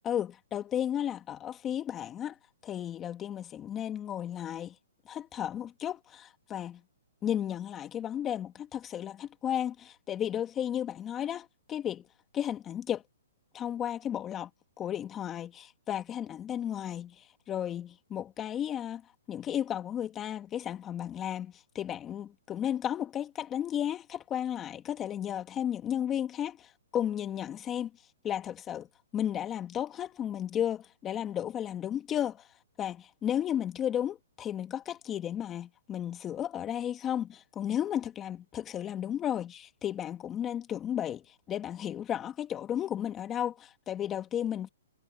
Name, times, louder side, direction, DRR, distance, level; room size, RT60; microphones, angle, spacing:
voice 1, 0.1-2.4 2.6-4.7 5.1-6.8 7.2-12.1 12.3-13.0 13.5-14.5 14.8-19.0 19.3-27.9 28.2-28.9 29.1-32.5 32.8-44.7, left 10 dB, 20° left, 2.2 m, -34 dB
hypercardioid pair, 145°, 0 cm